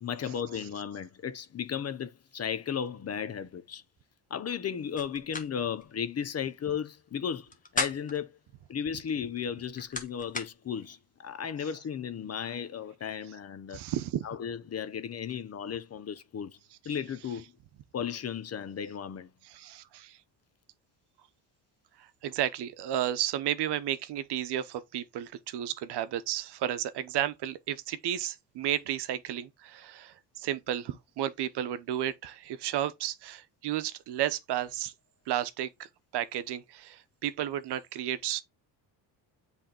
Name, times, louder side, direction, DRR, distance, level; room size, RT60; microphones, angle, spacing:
voice 1, 0.0-3.8 4.3-8.3 8.7-13.8 14.2-16.6 16.8-17.5 17.9-19.3, left 8 dB, 35° left, 0.7 m, -35 dB
sound 1, 5.0-5.5 5.8-5.9 7.4-8.2 9.4-10.5, left 3 dB, 20° left, 1.3 m, -35 dB
voice 2, 13.7-14.2 19.4-20.2 22.0-34.9 35.3-38.4, right 11 dB, 65° right, 0.9 m, -33 dB
7.7 x 3.5 x 4.3 m
cardioid pair, 110°, 43 cm